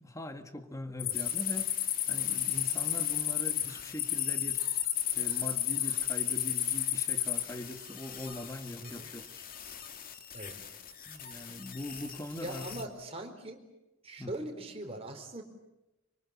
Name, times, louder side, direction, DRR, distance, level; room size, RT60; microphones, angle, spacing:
voice 1, 0.0-4.6 5.1-9.4 11.1-12.9 14.2-14.3, left 1 dB, 15° left, 7 dB, 1.9 m, -42 dB
sound 1, 1.0-7.4, left 12 dB, 85° left, 2.1 m, -31 dB
sound 2, 1.1-12.8, left 7 dB, 45° left, 2.6 m, -46 dB
voice 2, 8.8-9.1 10.3-10.5 12.4-13.6 14.0-15.4, right 1 dB, 30° right, 3 dB, 4.5 m, -41 dB
25.5 x 25.0 x 8.7 m, 0.96 s
head